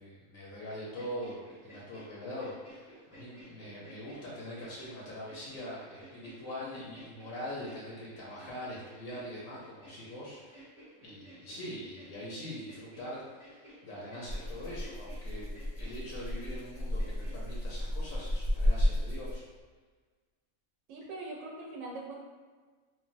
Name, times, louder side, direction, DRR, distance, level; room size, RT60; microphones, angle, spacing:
voice 1, 0.0-10.6 11.0-13.2 13.5-19.4, equal, 80° left, -5 dB, 1.1 m, -43 dB
sound 1, 1.0-17.7, right 1 dB, 5° right, 0.7 m, -55 dB
Rattle (instrument), 14.3-19.6, left 1 dB, 45° right, 0.9 m, -32 dB
voice 2, 20.9-22.2, right 2 dB, 70° right, -2 dB, 0.9 m, -42 dB
3.2 x 2.1 x 2.4 m, 1.4 s
omnidirectional pair, 1.4 m